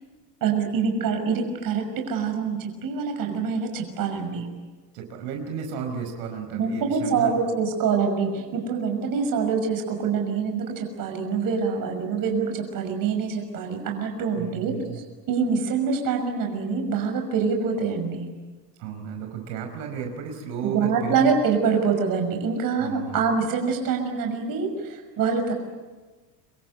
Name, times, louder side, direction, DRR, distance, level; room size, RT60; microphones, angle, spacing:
voice 1, 0.4-4.5 6.5-18.3 20.6-25.5, right 5 dB, 45° right, 4 dB, 6.1 m, -25 dB
voice 2, 4.9-7.3 14.3-15.0 18.8-21.3 22.8-23.2, right 7 dB, 80° right, 3 dB, 5.3 m, -33 dB
27.0 x 23.0 x 8.2 m, 1.3 s
cardioid pair, 145°, 47 cm